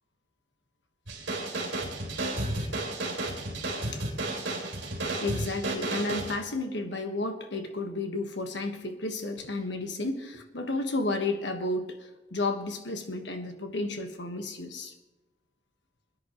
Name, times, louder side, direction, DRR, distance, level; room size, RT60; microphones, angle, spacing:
sound 1, 1.1-6.4, right 2 dB, 80° right, 3.1 m, -32 dB
voice 1, 5.2-14.9, left 2 dB, 70° left, 6 dB, 1.4 m, -32 dB
22.0 x 10.5 x 3.1 m, 1.1 s
head